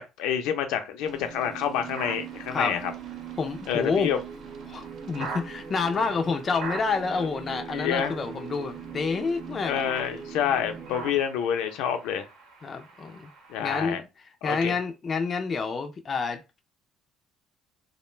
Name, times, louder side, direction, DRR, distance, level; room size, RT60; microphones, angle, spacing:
voice 1, 0.0-2.9 3.7-4.2 7.7-8.2 9.6-12.3 13.5-14.0 14.4-14.8, left 8 dB, 85° left, 0.5 m, -28 dB
sound 1, 1.0-11.2, right 7 dB, 45° right, 0.5 m, -41 dB
sound 2, 1.8-13.9, right 3 dB, 75° right, 0.8 m, -44 dB
voice 2, 3.4-4.1 4.7-9.8 12.6-13.3 13.6-14.1 14.4-16.6, left 4 dB, 30° left, 0.3 m, -28 dB
2.4 x 2.1 x 3.1 m
cardioid pair, 145°, 0 cm